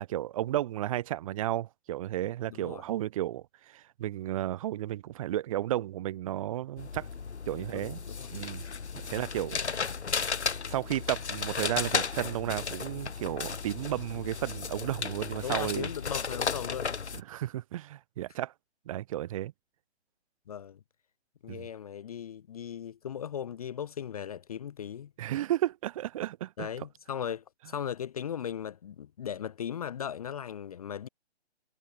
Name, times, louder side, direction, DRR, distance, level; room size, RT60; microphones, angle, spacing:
voice 1, 0.0-7.1 7.4-8.0 8.3-8.6 8.9-9.8 10.7-15.9 17.1-18.5 18.8-19.5 21.5-21.7 25.2-26.7, right 13 dB, 30° right, 1.8 m, -33 dB
voice 2, 2.5-2.8 7.7-8.3 9.6-9.8 15.4-17.0 20.5-20.8 21.4-25.1 26.6-31.1, left 9 dB, 35° left, 0.7 m, -38 dB
sound 1, 6.8-17.2, left 5 dB, 75° left, 1.1 m, -34 dB
figure-of-eight pair, 140°, 34 cm